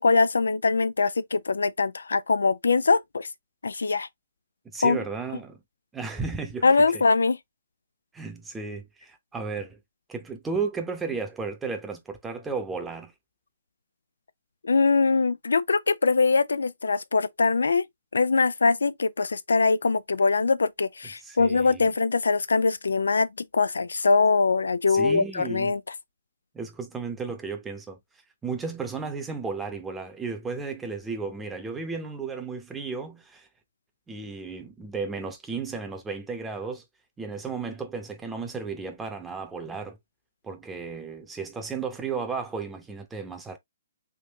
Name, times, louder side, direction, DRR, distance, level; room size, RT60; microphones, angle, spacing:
voice 1, 0.0-3.3 3.6-4.1 4.8-5.0 6.6-7.4 14.6-17.8 18.1-23.3 23.5-25.8, left 4 dB, 80° left, 0.3 m, -22 dB
voice 2, 4.6-5.6 5.9-6.6 8.1-9.8 10.1-13.1 21.2-21.9 24.9-25.7 26.5-28.0 28.4-33.5 34.1-36.8 37.2-40.0 40.4-43.6, right 4 dB, 10° right, 0.9 m, -34 dB
3.7 x 2.6 x 2.9 m
hypercardioid pair, 135°, 0 cm